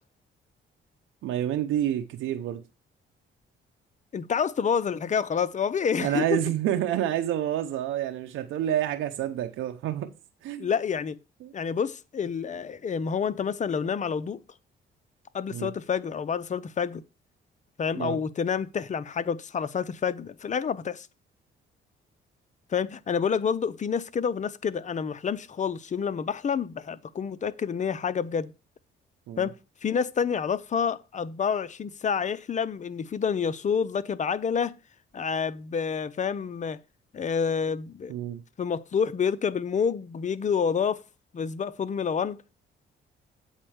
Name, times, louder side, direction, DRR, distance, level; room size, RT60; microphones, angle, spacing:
voice 1, 1.2-2.6 6.0-10.2 10.4-10.7 11.4-11.5 15.5-15.7 17.9-18.2 29.3-29.5 38.1-38.4, right 11 dB, 85° right, 0.7 m, -28 dB
voice 2, 4.1-6.2 10.6-11.2 11.5-14.4 15.3-17.0 17.8-21.1 22.7-28.5 29.4-29.5 29.8-34.7 35.1-36.8 37.1-38.1 38.6-41.0 41.3-42.4, left 6 dB, 40° left, 0.7 m, -28 dB
8.2 x 4.3 x 6.3 m
cardioid pair, 90°, 20 cm